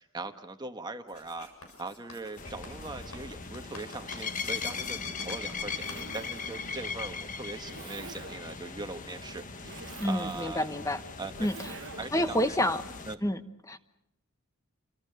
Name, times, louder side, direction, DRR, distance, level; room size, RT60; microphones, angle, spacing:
voice 1, 0.0-1.5 1.8-10.7 11.2-11.5 12.0-12.7 13.1-13.2, right 3 dB, 20° right, 7 dB, 1.2 m, -41 dB
Writing, 1.1-6.9, left 2 dB, 90° left, 7.3 m, -48 dB
sound 1, 2.4-13.1, left 5 dB, 35° left, 1.3 m, -39 dB
Zipper (clothing), 4.4-12.3, right 4 dB, 60° right, 1.1 m, -48 dB
voice 2, 10.0-11.0 11.4-11.6 12.1-12.8 13.2-13.8, left 1 dB, 15° left, 10 dB, 1.0 m, -28 dB
29.0 x 25.0 x 6.7 m, 0.85 s
head